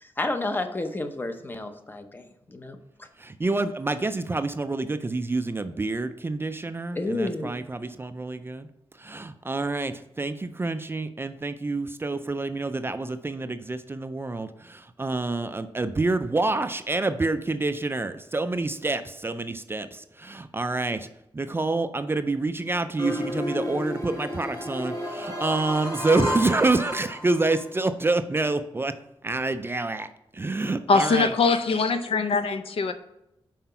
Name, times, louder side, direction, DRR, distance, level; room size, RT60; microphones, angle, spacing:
voice 1, 0.0-3.1 6.9-7.5, left 2 dB, 20° left, 7 dB, 0.7 m, -31 dB
voice 2, 3.2-8.7 9.0-21.1 21.3-28.9 29.2-30.1 30.3-31.3, right 3 dB, 25° right, 10 dB, 0.3 m, -27 dB
sound 1, 23.0-27.6, left 1 dB, 35° left, 1.4 m, -32 dB
voice 3, 30.9-32.9, left 4 dB, 70° left, 9 dB, 0.6 m, -22 dB
5.8 x 4.6 x 5.5 m, 0.83 s
wide cardioid pair, 130°, 10 cm